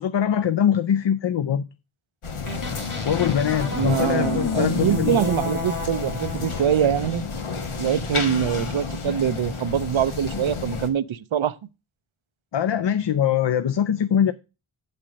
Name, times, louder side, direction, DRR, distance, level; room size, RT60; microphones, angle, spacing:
voice 1, 0.0-1.7 3.0-5.3 12.5-14.3, left 9 dB, 60° left, 0.6 m, -22 dB
sound 1, 2.2-10.9, left 4 dB, 90° left, 1.2 m, -31 dB
sound 2, 2.4-6.6, left 3 dB, 40° left, 1.6 m, -30 dB
voice 2, 3.7-7.2 7.8-11.5, right 9 dB, 70° right, 0.6 m, -24 dB
7.6 x 4.3 x 6.2 m
wide cardioid pair, 55°, 49 cm